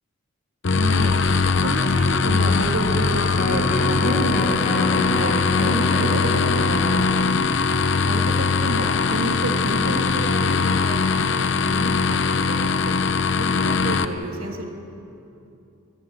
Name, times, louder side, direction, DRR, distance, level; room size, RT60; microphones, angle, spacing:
sound 1, 0.6-14.0, left 4 dB, 55° left, 0.8 m, -21 dB
voice 1, 0.7-1.1 1.6-7.4 8.0-11.3 11.6-13.0 13.4-14.7, right 1 dB, 80° right, 1 dB, 3.1 m, -30 dB
Electric guitar, 3.3-9.6 10.0-10.1, left 1 dB, 35° left, 1.5 m, -30 dB
22.0 x 21.0 x 7.8 m, 2.7 s
head